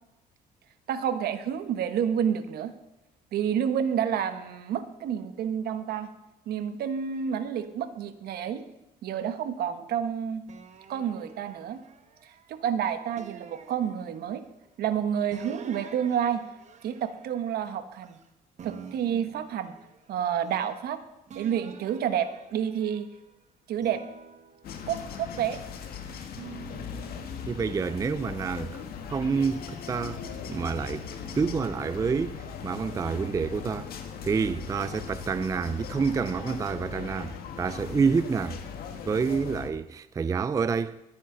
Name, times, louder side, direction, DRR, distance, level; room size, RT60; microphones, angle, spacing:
voice 1, 0.9-2.7 3.3-6.1 6.5-8.6 9.0-10.5 10.9-11.8 12.5-14.4 14.8-16.4 16.8-18.2 18.6-19.7 20.1-21.0 21.3-23.1 23.7-24.0 24.9-25.6, right 8 dB, 65° right, 1.1 m, -29 dB
sound 1, 10.5-12.6 13.2-14.5 15.3-18.3 18.6-20.9 21.3-23.3 23.8-25.7 26.3-27.5, right 7 dB, 45° right, 1.2 m, -49 dB
sound 2, 24.6-39.7, left 7 dB, 65° left, 1.6 m, -39 dB
voice 2, 27.5-28.8 29.1-30.2 30.5-31.1 31.3-38.6 39.1-41.0, right 5 dB, 20° right, 0.4 m, -28 dB
20.5 x 9.3 x 3.9 m
cardioid pair, 110°, 17 cm